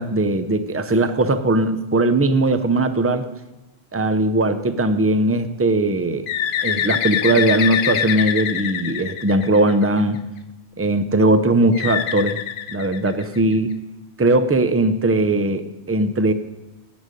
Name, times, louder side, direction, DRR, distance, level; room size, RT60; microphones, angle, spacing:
voice 1, 0.0-3.3 3.9-6.3 6.6-10.2 10.8-12.4 12.7-13.7 14.2-15.6 15.9-16.3, right 2 dB, 15° right, 10 dB, 0.5 m, -19 dB
Bird, 6.3-10.0 11.7-13.5, left 9 dB, 70° left, 0.8 m, -25 dB
13.0 x 9.5 x 5.3 m, 1.0 s
omnidirectional pair, 1.2 m